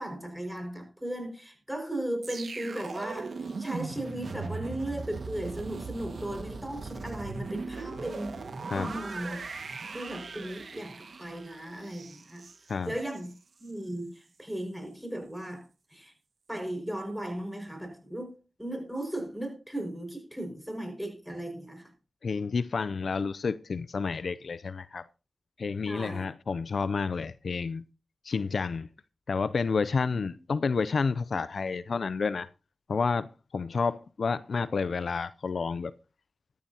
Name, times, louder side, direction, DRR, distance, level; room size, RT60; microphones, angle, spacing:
voice 1, 0.0-8.4 8.8-9.4 9.9-12.4 12.8-13.3 13.6-15.6 15.9-16.1 16.5-21.9 25.8-26.3 30.1-30.3, right 1 dB, 5° right, 5.6 m, -36 dB
sound 1, 2.2-13.3 13.7-13.9, right 4 dB, 70° right, 1.7 m, -39 dB
voice 2, 22.2-25.1 25.6-27.8 28.2-28.9 29.3-32.5 32.9-35.9, left 5 dB, 70° left, 0.5 m, -30 dB
15.5 x 13.0 x 2.9 m
cardioid pair, 40°, 0 cm